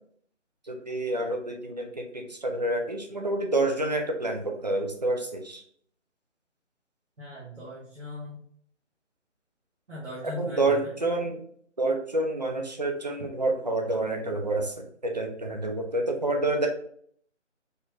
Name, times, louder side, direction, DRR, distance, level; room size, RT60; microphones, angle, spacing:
voice 1, 0.7-5.6 10.2-11.4 11.8-16.7, right 2 dB, 35° right, 3 dB, 0.5 m, -28 dB
voice 2, 7.2-8.4 9.9-11.0, left 1 dB, 70° right, -6 dB, 1.4 m, -39 dB
4.4 x 3.2 x 2.4 m, 0.62 s
figure-of-eight pair, 150°, 37 cm